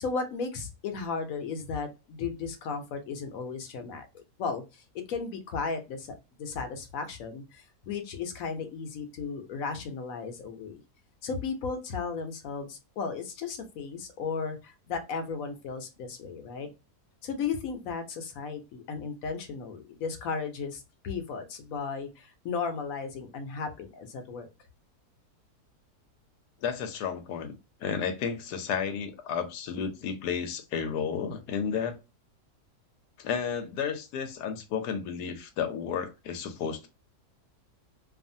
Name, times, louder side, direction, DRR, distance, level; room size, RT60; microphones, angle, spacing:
voice 1, 0.0-10.8 11.2-16.7 17.2-24.5, left 5 dB, 65° left, 1.0 m, -35 dB
voice 2, 26.6-27.5 27.8-32.0 33.2-36.9, left 7 dB, 90° left, 1.2 m, -32 dB
2.7 x 2.4 x 2.5 m
omnidirectional pair, 1.7 m